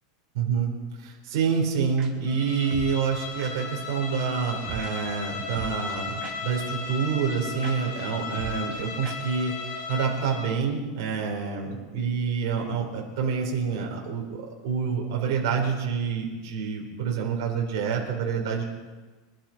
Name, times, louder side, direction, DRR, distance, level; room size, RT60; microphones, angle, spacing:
voice 1, 0.3-0.7 1.0-9.6 9.9-18.6, right 6 dB, 55° right, 0 dB, 4.6 m, -27 dB
sound 1, 2.0-2.1 2.7-2.9 3.4-3.5 4.6-4.9 5.5-6.6 6.9-7.0 7.3-7.4 7.6-7.7 8.0-8.1 8.3-8.8 9.0-9.2 9.4-9.5 9.8-9.9, right 7 dB, 25° right, 1.7 m, -38 dB
Bowed string instrument, 2.2-10.6, left 5 dB, 50° left, 3.4 m, -36 dB
24.5 x 11.5 x 4.6 m, 1.3 s
supercardioid pair, 175°, 2 cm